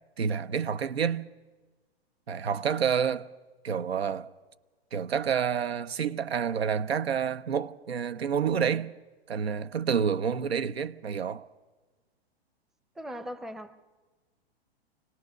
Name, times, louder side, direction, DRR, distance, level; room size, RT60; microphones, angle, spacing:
voice 1, 0.2-1.3 2.3-3.3 3.6-4.3 4.9-8.9 9.3-11.4, right 7 dB, 80° right, 0.8 m, -28 dB
voice 2, 13.0-13.7, equal, ahead, 0.6 m, -39 dB
26.0 x 18.0 x 6.5 m
hypercardioid pair, 115°, 31 cm